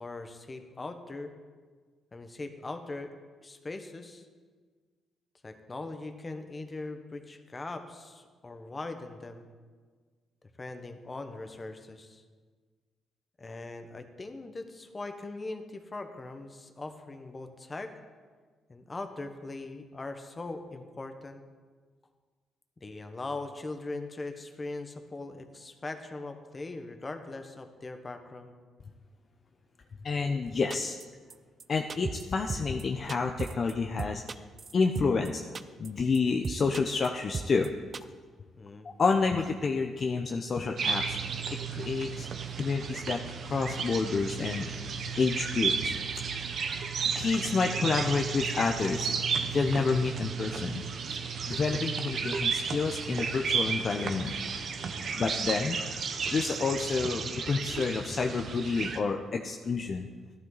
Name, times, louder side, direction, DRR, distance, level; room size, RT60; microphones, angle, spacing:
voice 1, 0.0-1.3 2.1-3.1 3.4-4.3 5.4-9.5 10.6-12.2 13.4-17.9 18.7-21.4 22.8-28.5 38.5-38.9, left 2 dB, 25° left, 7 dB, 1.2 m, -40 dB
voice 2, 30.0-31.0 31.7-34.4 34.7-35.4 35.8-37.7 39.0-41.2 41.7-42.3 42.6-44.7 45.2-45.9 46.3-49.2 49.5-50.8 51.5-54.3 55.2-55.9 56.3-60.1, left 4 dB, 45° left, 3 dB, 0.7 m, -29 dB
sound 1, 30.7-31.0 31.3-31.4 31.6-31.7 31.9-32.2 32.5-32.8 33.1-33.7 34.0-35.3 35.5-35.9 36.1-36.2 36.4-37.1 37.3-37.7 37.9-38.0, right 5 dB, 40° right, 0.5 m, -35 dB
sound 2, 40.8-59.0, right 6 dB, 55° right, 1.0 m, -33 dB
14.0 x 12.0 x 4.0 m, 1.5 s
cardioid pair, 90°, 0 cm